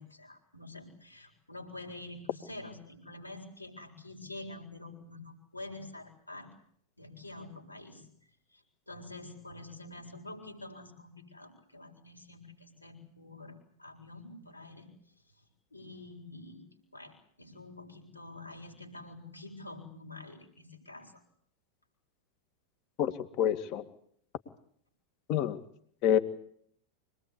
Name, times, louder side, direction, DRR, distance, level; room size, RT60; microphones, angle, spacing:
voice 1, 0.0-6.5 7.0-8.1 8.5-14.9 15.7-16.6 16.9-21.1, left 2 dB, 85° left, 2 dB, 7.6 m, -47 dB
voice 2, 23.0-23.8 25.3-25.6 26.0-26.2, left 10 dB, 40° left, 11 dB, 2.3 m, -27 dB
26.5 x 21.0 x 8.6 m, 0.64 s
figure-of-eight pair, 90°, 0 cm